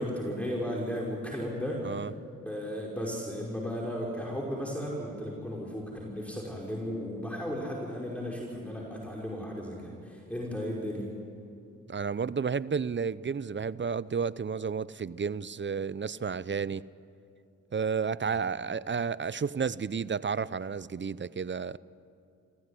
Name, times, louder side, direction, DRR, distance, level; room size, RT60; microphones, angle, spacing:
voice 1, 0.0-1.9 2.3-11.1 18.3-18.4, equal, 5° left, -3 dB, 5.3 m, -35 dB
voice 2, 11.9-16.8 17.7-21.8, right 6 dB, 35° right, 19 dB, 0.6 m, -31 dB
26.5 x 16.0 x 9.9 m, 2.5 s
supercardioid pair, 45°, 32 cm